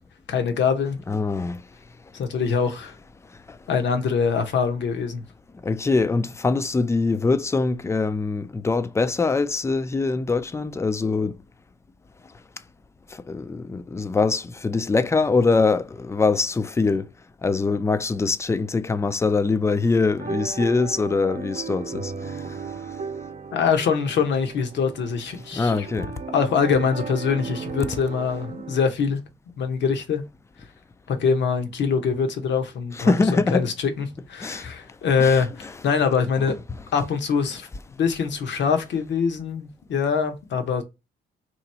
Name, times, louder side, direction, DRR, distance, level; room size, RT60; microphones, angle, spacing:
voice 1, 0.3-1.0 2.1-3.0 3.7-5.2 23.5-25.9 26.3-29.2 29.6-30.2 31.1-36.6 36.9-37.7 38.0-40.8, left 6 dB, 65° left, 0.9 m, -24 dB
voice 2, 1.1-1.6 3.5-3.6 5.6-11.4 13.1-17.1 17.4-22.6 25.5-26.1 32.9-33.7 34.4-34.7 35.2-35.4 36.5-36.6, left 3 dB, 15° left, 0.4 m, -23 dB
sound 1, 20.2-28.8, right 5 dB, 45° right, 0.8 m, -35 dB
3.0 x 2.5 x 4.2 m
cardioid pair, 90°, 20 cm